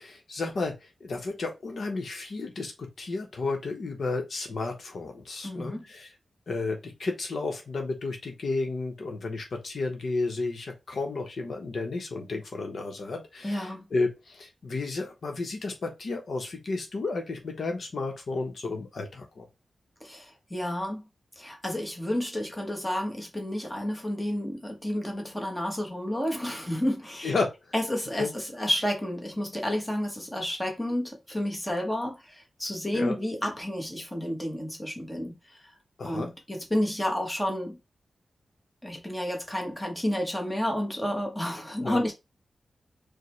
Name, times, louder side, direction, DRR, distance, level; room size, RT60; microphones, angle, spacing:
voice 1, 0.0-6.1 6.5-19.5 27.2-27.5 28.2-28.3 32.9-33.2 36.0-36.3 41.8-42.0, left 3 dB, 60° left, 0.8 m, -32 dB
voice 2, 5.4-5.9 13.4-13.8 20.0-21.0 21.4-27.3 27.7-35.3 36.0-37.8 38.8-42.1, left 1 dB, 5° left, 1.1 m, -30 dB
4.8 x 2.1 x 3.1 m
wide cardioid pair, 165°, 0 cm